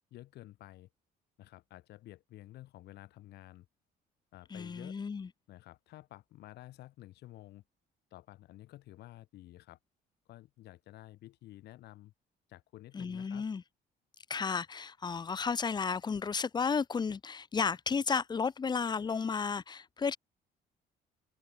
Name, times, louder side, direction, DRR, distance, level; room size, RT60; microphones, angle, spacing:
voice 1, 0.1-0.9 1.4-3.7 4.3-5.0 5.5-7.6 8.1-9.8 10.3-12.1 12.5-13.5, left 15 dB, 75° left, 6.9 m, -52 dB
voice 2, 4.5-5.3 12.9-13.6 14.3-20.2, left 5 dB, 25° left, 0.9 m, -33 dB
cardioid pair, 110°, 17 cm